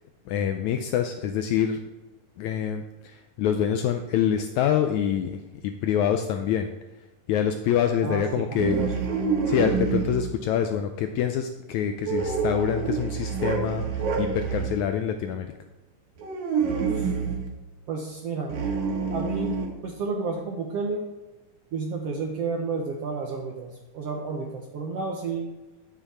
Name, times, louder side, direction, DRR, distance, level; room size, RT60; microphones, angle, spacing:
voice 1, 0.3-1.8 2.4-6.7 7.3-8.9 9.5-13.8 14.2-15.5, left 8 dB, 80° left, 6 dB, 1.7 m, -26 dB
voice 2, 8.0-8.9 16.9-17.1 17.9-18.6 19.1-19.6 19.8-21.0 21.7-25.5, right 4 dB, 70° right, 2 dB, 1.5 m, -31 dB
sound 1, 8.6-10.3 12.0-14.8 16.2-17.5 18.5-19.7, right 5 dB, 90° right, 3.3 m, -27 dB
11.5 x 7.4 x 4.2 m, 1.1 s
omnidirectional pair, 3.8 m